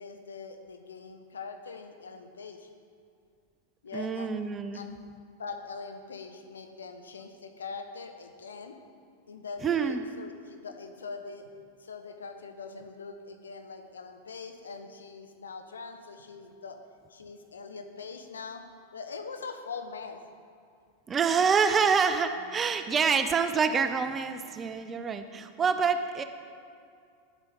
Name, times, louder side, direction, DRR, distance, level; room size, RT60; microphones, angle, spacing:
voice 1, 0.0-2.7 3.8-4.4 4.7-4.9 5.4-8.7 9.3-11.5 11.8-16.8 17.1-18.6 18.9-20.2, left 4 dB, 70° left, 6 dB, 0.8 m, -42 dB
voice 2, 3.9-4.9 9.6-10.0 21.1-26.2, right 6 dB, 20° right, 9 dB, 0.5 m, -26 dB
10.0 x 8.0 x 3.9 m, 2.3 s
figure-of-eight pair, 90°, 0 cm